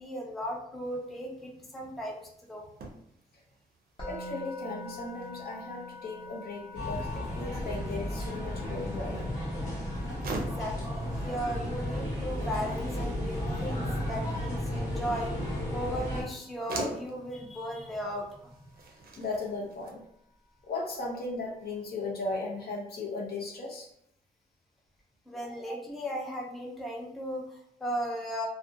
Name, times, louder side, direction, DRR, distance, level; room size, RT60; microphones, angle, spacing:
voice 1, 0.0-2.6 10.3-18.4 25.3-28.5, equal, ahead, -1 dB, 0.3 m, -36 dB
sound 1, 0.8-19.9, right 3 dB, 60° right, 0.4 m, -47 dB
Musical instrument, 4.0-15.1, left 2 dB, 30° left, 0.8 m, -47 dB
voice 2, 4.1-9.2 19.2-20.0 20.6-23.9 25.4-25.5, left 3 dB, 65° left, -1 dB, 0.6 m, -36 dB
sound 2, 6.7-16.2, left 1 dB, 50° left, 1.1 m, -33 dB
2.4 x 2.1 x 2.6 m, 0.72 s
wide cardioid pair, 135°, 17 cm